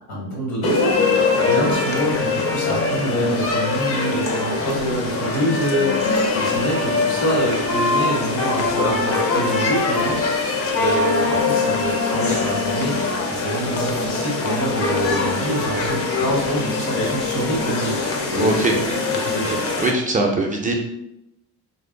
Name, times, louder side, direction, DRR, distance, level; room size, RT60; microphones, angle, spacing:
voice 1, 0.1-13.0 13.3-18.0 18.3-18.5 19.2-19.6, right 1 dB, 80° left, -3 dB, 1.4 m, -25 dB
sound 1, 0.6-19.9, left 4 dB, 40° left, 0.6 m, -23 dB
Wind instrument woodwind instrument, 7.7-10.3 10.7-13.1, left 3 dB, 65° left, 1.0 m, -24 dB
voice 2, 18.4-18.7 19.8-20.7, right 2 dB, 25° right, 0 dB, 0.4 m, -20 dB
2.5 x 2.1 x 3.7 m, 0.87 s
cardioid pair, 115°, 37 cm